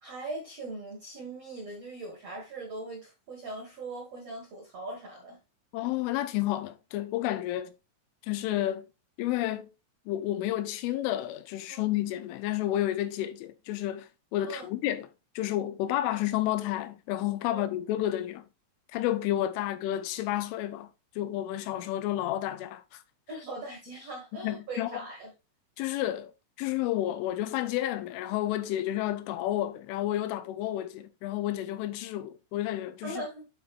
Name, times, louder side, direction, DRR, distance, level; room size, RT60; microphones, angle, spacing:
voice 1, 0.0-5.4 11.7-11.8 14.4-14.7 17.5-17.6 23.3-25.3 33.0-33.5, right 2 dB, 75° right, 1.4 m, -40 dB
voice 2, 5.7-7.7 8.2-8.9 9.2-9.7 10.1-15.1 15.4-18.4 18.9-20.9 21.2-23.0 24.4-25.0 25.8-26.3 26.6-33.2, left 13 dB, 80° left, 3.0 m, -31 dB
11.5 x 5.1 x 2.4 m
omnidirectional pair, 5.7 m